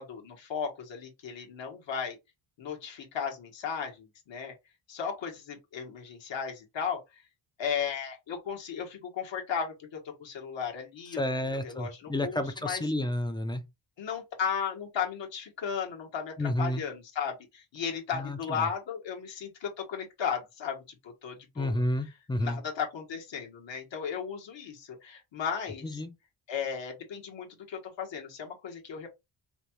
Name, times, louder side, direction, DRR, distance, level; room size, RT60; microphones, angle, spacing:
voice 1, 0.0-2.2 2.6-4.5 4.9-7.2 7.6-12.8 14.0-21.8 22.4-26.0 26.5-29.1, left 7 dB, 65° left, 1.5 m, -35 dB
voice 2, 11.2-13.6 16.4-16.8 18.1-18.7 21.6-22.6 25.8-26.1, left 1 dB, 10° left, 0.4 m, -31 dB
5.1 x 2.3 x 3.0 m
wide cardioid pair, 175°, 49 cm